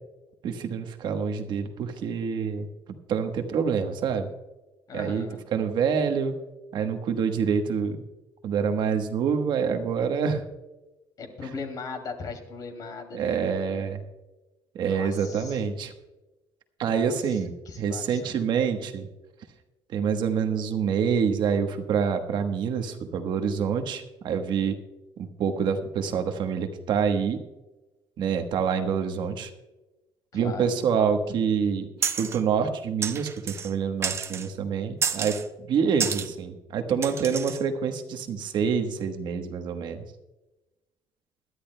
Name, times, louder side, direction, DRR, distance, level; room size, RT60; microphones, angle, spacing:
voice 1, 0.4-2.7 3.1-4.3 4.9-5.2 5.5-6.3 6.7-8.0 8.4-10.4 13.1-14.0 14.7-15.9 16.8-19.1 19.9-24.8 25.2-27.4 28.2-29.5 30.3-31.9 32.2-40.0, right 6 dB, 55° right, 6 dB, 1.2 m, -26 dB
voice 2, 4.9-5.4 11.2-13.8 14.8-15.6 16.9-17.1 17.7-18.5 30.3-30.7 36.0-36.2, left 4 dB, 45° left, 6 dB, 2.5 m, -39 dB
sound 1, 32.0-32.4 33.0-33.7 34.0-34.5 35.0-35.4 36.0-36.3 37.0-37.6, right 6 dB, 30° right, 0.7 m, -30 dB
21.0 x 12.5 x 2.2 m, 1.1 s
cardioid pair, 160°, 9 cm